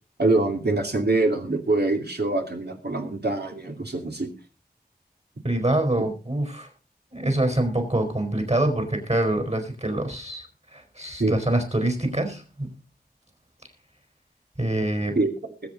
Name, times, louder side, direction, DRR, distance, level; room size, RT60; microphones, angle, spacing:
voice 1, 0.2-4.3 11.2-11.4 15.1-15.3, right 2 dB, 75° right, 3 dB, 2.6 m, -24 dB
voice 2, 5.4-6.7 7.1-10.5 10.7-12.8 14.6-15.2, right 1 dB, 40° right, 5 dB, 4.5 m, -25 dB
20.5 x 8.2 x 4.0 m, 0.34 s
wide cardioid pair, 45°, 17 cm